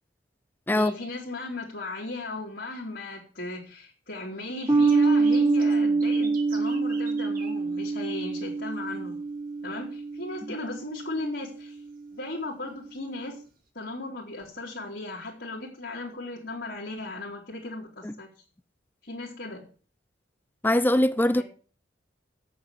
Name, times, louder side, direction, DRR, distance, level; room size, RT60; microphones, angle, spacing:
voice 1, 0.7-9.2 9.6-11.8 12.1-13.4 13.7-18.3 19.0-19.6 21.4-21.5, left 2 dB, 60° left, 3.0 m, -36 dB
sound 1, 4.6-8.7 9.0-9.3 9.8-9.9 11.1-11.3 11.7-11.8 12.9-13.0 13.7-13.8, right 6 dB, 50° right, 2.1 m, -47 dB
sound 2, 4.7-11.4, right 3 dB, 25° right, 3.2 m, -25 dB
voice 2, 20.6-21.4, left 1 dB, 10° left, 0.5 m, -22 dB
8.7 x 6.9 x 8.1 m
head